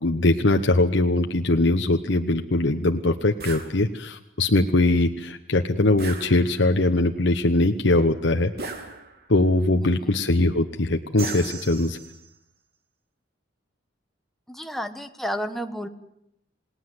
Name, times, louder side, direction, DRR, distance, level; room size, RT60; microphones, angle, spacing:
voice 1, 0.0-8.5 9.3-12.0, left 2 dB, 65° left, 5 dB, 1.1 m, -21 dB
sound 1, 3.4-3.7 6.0-6.8 8.6-9.4 11.2-12.3, right 4 dB, 55° right, 3.3 m, -36 dB
voice 2, 14.5-15.9, equal, ahead, 6 dB, 1.4 m, -31 dB
28.5 x 19.0 x 7.9 m, 0.78 s
head